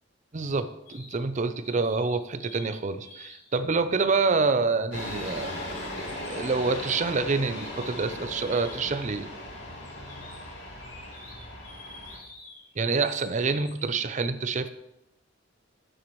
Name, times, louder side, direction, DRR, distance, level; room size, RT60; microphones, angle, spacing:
voice 1, 0.3-5.7 6.3-9.3 12.8-14.7, right 4 dB, 40° right, 11 dB, 0.6 m, -27 dB
sound 1, 0.9-1.2 1.6-2.7 3.0-3.5 4.2-4.4 4.9-9.2 9.8-13.8, left 2 dB, 50° left, 2.8 m, -49 dB
sound 2, 4.9-12.2, left 1 dB, 70° left, 2.6 m, -38 dB
13.0 x 8.9 x 3.1 m, 0.87 s
head